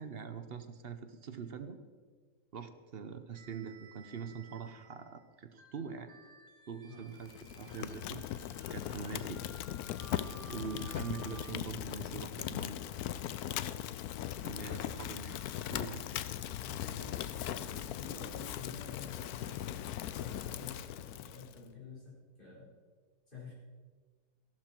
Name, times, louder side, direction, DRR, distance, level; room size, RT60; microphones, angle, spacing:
voice 1, 0.0-1.8 2.5-6.1 6.7-9.4 10.5-12.8 14.4-16.0, right 6 dB, 50° right, 9 dB, 0.7 m, -44 dB
sound 1, 3.3-11.5, right 4 dB, 70° right, 1.6 m, -57 dB
Fire, 7.2-21.6, left 11 dB, 70° left, 1.0 m, -39 dB
voice 2, 16.6-22.7 23.3-23.5, left 4 dB, 30° left, -7 dB, 5.3 m, -50 dB
14.5 x 12.0 x 4.5 m, 1.5 s
omnidirectional pair, 1.9 m